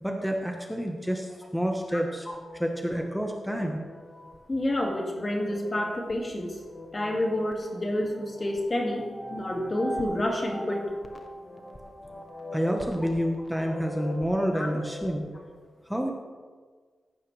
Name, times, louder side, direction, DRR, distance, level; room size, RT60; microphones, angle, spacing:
voice 1, 0.0-2.3 2.5-3.8 12.5-15.3 15.9-16.1, equal, ahead, 2 dB, 1.2 m, -29 dB
sound 1, 2.2-15.2, left 1 dB, 20° left, 1.3 m, -42 dB
voice 2, 4.5-6.6 6.9-10.8 14.5-14.7, left 1 dB, 35° left, 1 dB, 2.2 m, -29 dB
15.0 x 9.4 x 3.4 m, 1.5 s
cardioid pair, 65°, 0 cm